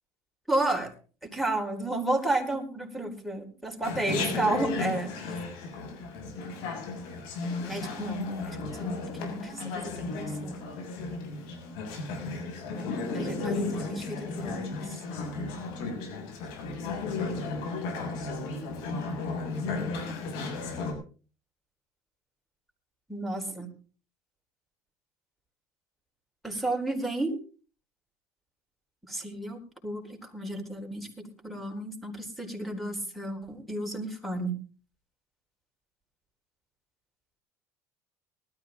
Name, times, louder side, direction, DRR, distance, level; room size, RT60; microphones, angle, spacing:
voice 1, 0.5-0.9 1.2-5.1 7.6-10.5 12.8-14.8 19.7-20.2 23.1-23.7 26.4-27.4 29.1-34.6, right 2 dB, ahead, 4 dB, 4.4 m, -32 dB
Chatter, 3.8-20.9, left 3 dB, 80° left, 6.5 m, -34 dB
19.5 x 13.0 x 3.9 m, 0.38 s
cardioid pair, 110°, 8 cm